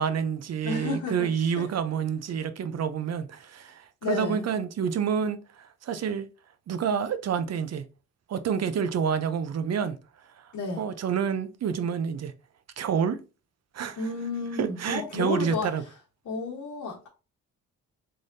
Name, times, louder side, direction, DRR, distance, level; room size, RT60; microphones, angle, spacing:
voice 1, 0.0-6.3 6.7-7.8 8.3-10.0 10.4-12.3 12.8-13.2 13.7-14.0 14.6-15.8, right 7 dB, 50° right, 0.6 m, -28 dB
voice 2, 0.6-1.6 4.0-4.4 10.5-10.9 14.0-15.7 16.2-17.1, left 4 dB, 65° left, 1.2 m, -32 dB
3.7 x 3.3 x 2.6 m
supercardioid pair, 70°, 33 cm